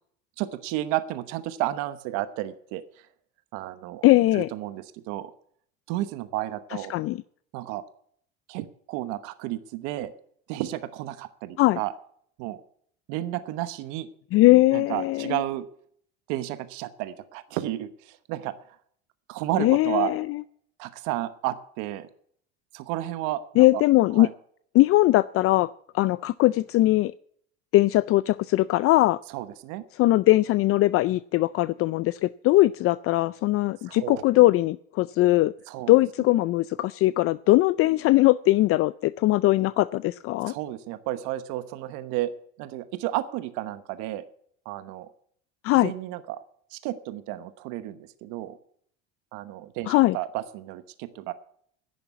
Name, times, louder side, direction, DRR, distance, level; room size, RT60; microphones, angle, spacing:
voice 1, 0.4-2.8 3.5-4.0 4.3-5.3 5.9-6.9 7.5-7.8 8.5-10.1 10.5-11.9 12.4-12.6 13.1-14.1 14.7-15.7 16.3-18.5 19.3-20.1 20.8-22.1 22.7-23.8 24.1-24.3 29.3-29.8 33.8-34.2 35.7-35.9 40.5-42.3 42.6-44.2 44.6-45.1 45.7-46.4 46.7-48.6 49.3-51.3, right 15 dB, 75° right, 12 dB, 1.1 m, -32 dB
voice 2, 4.0-4.5 6.9-7.2 11.6-11.8 14.3-15.4 19.6-20.4 23.6-24.3 24.7-27.1 27.7-29.2 30.0-35.5 35.9-40.5 45.6-45.9 49.9-50.2, left 17 dB, 50° left, 17 dB, 0.4 m, -20 dB
11.0 x 6.9 x 9.2 m, 0.62 s
supercardioid pair, 105°, 31 cm